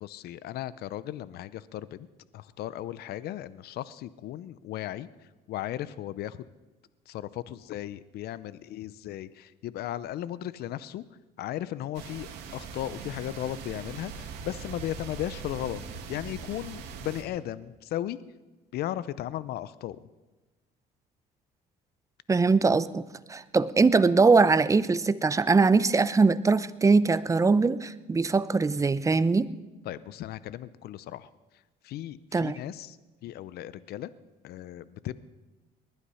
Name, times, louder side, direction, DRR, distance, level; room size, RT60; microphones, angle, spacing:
voice 1, 0.0-2.1 2.3-5.1 5.5-6.4 7.1-11.0 11.4-15.8 16.1-18.2 18.7-20.0 29.9-31.3 31.8-33.0 33.2-34.1 34.4-35.1, left 12 dB, 70° left, 17 dB, 0.6 m, -36 dB
sound 1, 11.9-17.2, right 5 dB, 90° right, 2.1 m, -41 dB
voice 2, 22.3-23.0 23.3-29.5 32.3-32.6, right 4 dB, 20° right, 16 dB, 0.6 m, -22 dB
20.0 x 11.5 x 5.6 m, 1.2 s
cardioid pair, 110°, 17 cm